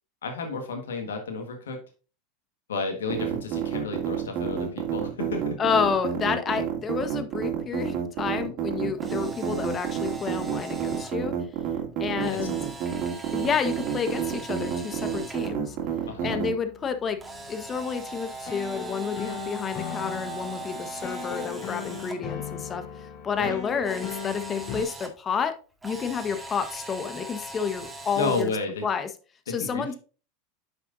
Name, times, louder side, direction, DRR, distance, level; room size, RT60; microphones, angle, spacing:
voice 1, 0.2-1.8 2.7-5.6 12.3-12.7 16.1-16.4 23.3-23.6 28.1-28.8 29.5-30.0, left 3 dB, 90° left, 4 dB, 1.6 m, -32 dB
sound 1, 3.1-16.5, right 9 dB, 55° right, 2.8 m, -29 dB
voice 2, 5.6-11.3 12.0-12.6 13.3-15.8 16.2-17.2 17.5-22.8 23.2-25.5 25.8-28.5 28.8-29.1 29.5-29.9, left 6 dB, 30° left, 9 dB, 1.2 m, -30 dB
Camera, 8.9-11.1 12.2-15.5 17.2-22.1 23.8-25.1 25.8-28.5, right 2 dB, 15° right, 2.0 m, -40 dB
sound 2, 15.5-24.8, left 8 dB, 45° left, 2.9 m, -39 dB
9.4 x 5.8 x 2.7 m, 0.35 s
hypercardioid pair, 105°, 0 cm